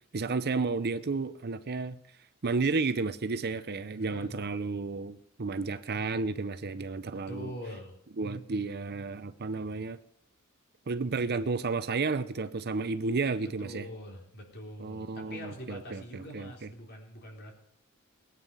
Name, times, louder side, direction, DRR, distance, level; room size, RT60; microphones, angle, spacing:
voice 1, 0.1-2.0 2.4-7.5 8.2-10.0 10.9-13.9 14.8-16.7, right 4 dB, 50° right, 0.7 m, -32 dB
voice 2, 3.9-4.4 7.1-8.0 13.4-17.6, equal, 50° left, 4.0 m, -44 dB
20.0 x 9.2 x 5.6 m
head